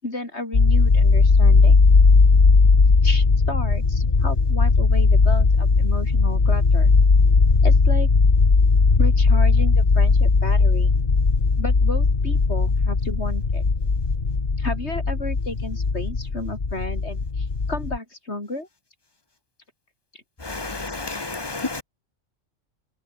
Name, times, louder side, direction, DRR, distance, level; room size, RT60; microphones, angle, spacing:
voice 1, 0.0-1.8 3.0-6.9 7.6-8.1 9.0-10.9 11.6-13.6 14.6-18.7 20.1-20.2, left 2 dB, 60° left, 5.8 m, -33 dB
sound 1, 0.5-18.0, left 4 dB, 40° left, 1.9 m, -18 dB
voice 2, 20.4-21.8, left 3 dB, 20° left, 1.3 m, -30 dB
omnidirectional pair, 1.3 m